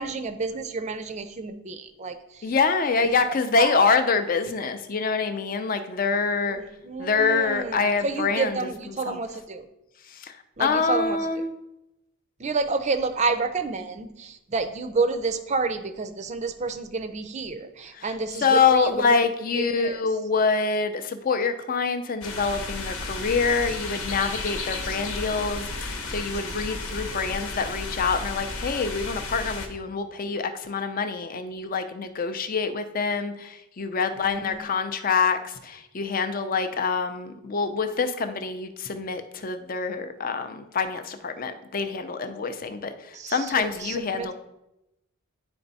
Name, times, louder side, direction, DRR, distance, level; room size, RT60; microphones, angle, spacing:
voice 1, 0.0-2.5 3.6-3.8 6.5-9.7 10.6-11.2 12.4-19.0 19.6-20.0 34.2-34.6 43.1-44.3, right 4 dB, 30° right, 10 dB, 0.5 m, -30 dB
voice 2, 2.4-6.6 7.0-8.7 9.1-9.2 10.1-11.5 17.9-44.3, left 5 dB, 40° left, 8 dB, 0.5 m, -26 dB
sound 1, 22.2-29.7, left 3 dB, 75° left, 1.0 m, -33 dB
9.8 x 3.4 x 4.0 m, 0.89 s
head